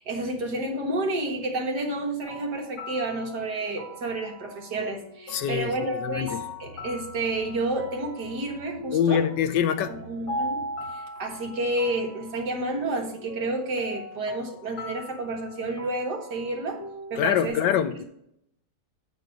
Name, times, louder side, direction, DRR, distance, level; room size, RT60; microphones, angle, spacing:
voice 1, 0.0-9.2 9.9-16.8 17.1-17.8, right 2 dB, 70° right, 2.1 m, -30 dB
sound 1, 2.2-17.5, left 1 dB, 20° left, 1.8 m, -39 dB
voice 2, 5.3-6.4 8.9-10.0 17.2-18.0, left 9 dB, 80° left, 1.3 m, -25 dB
8.6 x 4.0 x 5.9 m
omnidirectional pair, 1.9 m